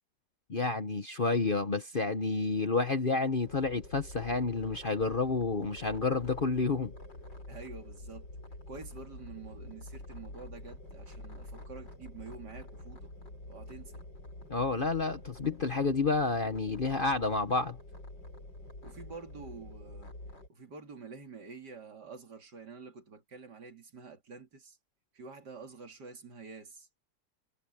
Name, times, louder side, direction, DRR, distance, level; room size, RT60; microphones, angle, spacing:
voice 1, 0.5-6.9 14.5-17.8, left 3 dB, 35° left, 1.0 m, -30 dB
sound 1, 3.4-20.5, left 1 dB, 85° left, 8.8 m, -47 dB
voice 2, 7.5-8.3 8.7-13.1 13.5-14.0 18.8-20.1 20.5-24.8 25.1-27.0, right 4 dB, 65° right, 3.2 m, -48 dB
omnidirectional pair, 1.9 m